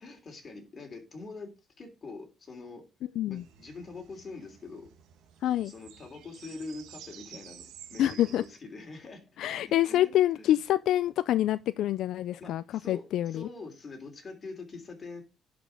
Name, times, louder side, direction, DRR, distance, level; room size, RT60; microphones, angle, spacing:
voice 1, 0.0-1.5 1.8-2.8 3.3-4.9 5.6-9.2 9.9-10.1 10.4-10.6 12.4-15.2, left 3 dB, 30° left, 3.4 m, -44 dB
sound 1, 3.3-8.5, right 9 dB, 85° right, 1.3 m, -51 dB
voice 2, 5.4-5.7 8.0-8.4 9.4-13.5, left 13 dB, 70° left, 0.4 m, -26 dB
11.0 x 5.2 x 5.3 m
cardioid pair, 140°, 0 cm